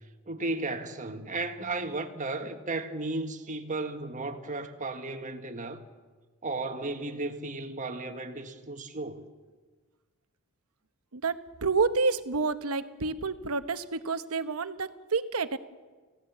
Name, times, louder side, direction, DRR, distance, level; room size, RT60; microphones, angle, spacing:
voice 1, 0.3-5.9 6.4-9.2, right 2 dB, 35° right, 1.5 m, -34 dB
voice 2, 11.1-15.6, right 4 dB, 80° right, 1.0 m, -29 dB
29.0 x 16.5 x 7.3 m
head